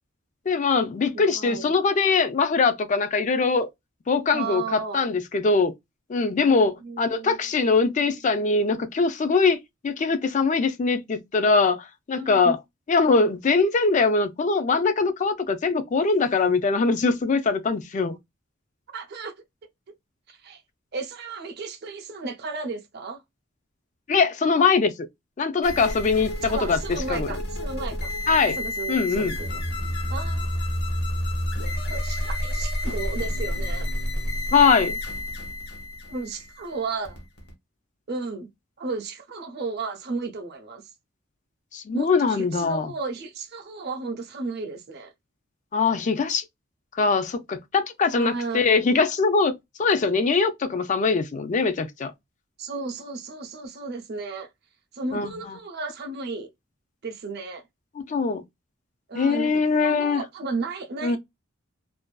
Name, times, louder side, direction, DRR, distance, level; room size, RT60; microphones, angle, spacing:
voice 1, 0.5-3.7 4.1-5.7 6.1-9.6 9.8-12.6 12.9-18.2 24.1-24.9 25.4-27.3 28.3-28.6 28.9-29.4 34.5-35.0 41.7-42.9 45.7-46.4 46.9-52.1 55.1-55.3 58.0-58.4 59.1-60.2 61.0-61.2, left 4 dB, 40° left, 0.4 m, -22 dB
voice 2, 1.1-1.7 4.3-5.1 6.8-7.4 8.5-8.8 12.1-12.6 18.9-19.3 20.3-20.6 20.9-23.2 26.5-28.1 28.6-29.5 30.1-30.6 31.6-33.9 36.1-37.2 38.1-38.5 38.8-40.8 41.9-45.1 48.1-48.8 52.6-54.5 54.9-56.5 57.0-57.6 59.1-59.5 59.8-61.2, right 4 dB, 55° right, 0.6 m, -34 dB
sound 1, 25.6-37.5, left 1 dB, 55° left, 0.9 m, -29 dB
2.5 x 2.2 x 2.2 m
head